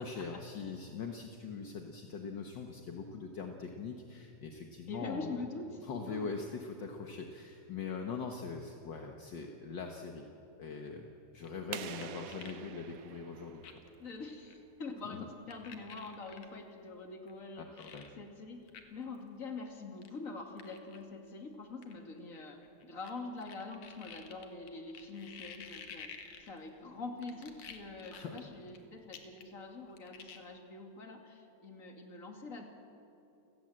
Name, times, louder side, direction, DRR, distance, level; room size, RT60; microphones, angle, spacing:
voice 1, 0.0-5.4 5.8-10.3 10.6-11.1 11.3-13.7 15.0-15.3 17.6-18.1 28.1-28.4, left 5 dB, 50° left, 3 dB, 1.5 m, -42 dB
voice 2, 4.9-5.7 6.1-6.3 11.6-11.7 12.0-12.1 14.0-18.6 18.9-32.6, left 3 dB, 30° left, 3 dB, 2.4 m, -45 dB
sound 1, 11.3-12.6 12.9-13.0 13.6-14.0 14.4-14.6 15.5-16.5 17.3-17.4 17.8-18.1 18.7-18.8 19.1-19.2 20.0-20.1 20.6-21.0 21.8-23.1 23.4-26.8 27.2-28.8 29.1-29.6 29.9-30.4, left 7 dB, 75° left, 3.0 m, -51 dB
sound 2, 11.7-14.4, right 10 dB, 75° right, 2.1 m, -46 dB
29.5 x 18.0 x 7.8 m, 2.8 s
omnidirectional pair, 3.4 m